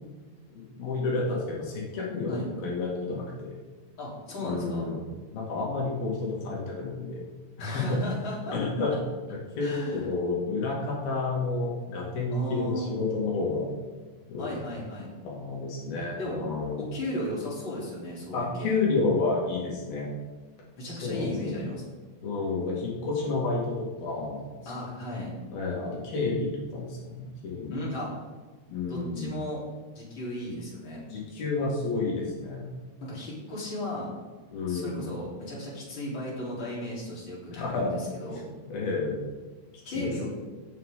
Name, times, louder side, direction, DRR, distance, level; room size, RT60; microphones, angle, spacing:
voice 1, 0.5-2.3 2.6-3.5 4.4-5.0 5.3-7.2 7.6-8.0 8.5-8.9 9.3-13.7 14.3-14.5 15.3-16.8 18.3-20.1 20.8-21.7 22.2-24.7 25.5-27.7 28.7-29.3 31.1-32.7 34.5-35.0 37.5-38.0 38.3-38.4 38.7-39.2 39.9-40.1, left 3 dB, 70° left, -3 dB, 4.0 m, -30 dB
voice 2, 4.0-4.9 7.6-8.6 9.6-10.1 12.3-13.0 14.4-15.1 16.2-16.4 16.8-18.8 20.8-21.9 24.7-25.3 27.7-28.1 28.9-29.6 29.9-31.0 33.0-34.1 34.7-38.4 39.9-40.2, left 1 dB, 30° left, -5 dB, 4.0 m, -35 dB
17.5 x 8.3 x 3.8 m, 1.3 s
omnidirectional pair, 4.5 m